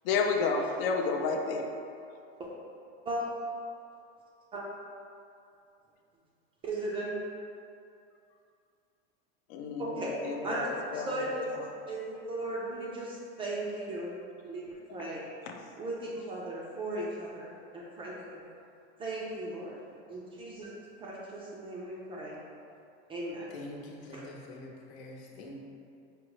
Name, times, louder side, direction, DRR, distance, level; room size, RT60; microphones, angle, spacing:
voice 1, 0.0-1.7 9.5-11.7 15.5-15.6, left 4 dB, 55° left, 3 dB, 0.5 m, -31 dB
voice 2, 6.6-7.1 9.8-10.1 10.4-10.7 10.9-11.4 11.9-14.2 14.4-15.2 15.8-18.4 19.0-19.8 20.1-20.7 21.0-22.4 23.1-23.5 24.1-24.2, right 1 dB, 15° right, -4 dB, 0.4 m, -37 dB
voice 3, 23.5-25.5, left 2 dB, 75° left, -1 dB, 0.9 m, -45 dB
5.1 x 2.1 x 4.6 m, 2.5 s
supercardioid pair, 145°, 33 cm